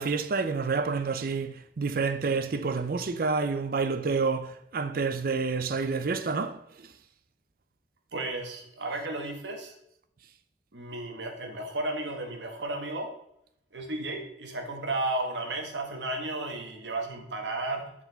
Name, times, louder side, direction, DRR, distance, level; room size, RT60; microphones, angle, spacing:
voice 1, 0.0-6.6, right 4 dB, 55° right, 0.5 m, -28 dB
voice 2, 8.1-9.7 10.7-13.1 13.7-17.9, right 2 dB, 90° right, 1.2 m, -33 dB
6.1 x 4.8 x 3.9 m
head